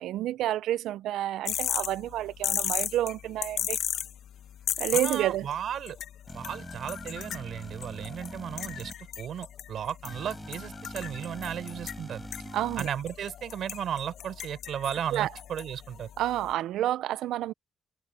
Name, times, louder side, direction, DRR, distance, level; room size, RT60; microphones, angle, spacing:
voice 1, 0.0-3.8 4.8-5.5 12.5-12.9 15.1-15.3 16.2-17.5, right 13 dB, 85° right, 0.5 m, -29 dB
sound 1, 1.4-16.5, left 10 dB, 70° left, 1.2 m, -37 dB
voice 2, 4.9-6.0 6.3-8.9 9.2-12.3 12.8-16.1, right 9 dB, 65° right, 4.4 m, -35 dB
sound 2, 6.3-8.9 10.0-12.9, equal, 5° right, 7.6 m, -43 dB
cardioid pair, 90°, 0 cm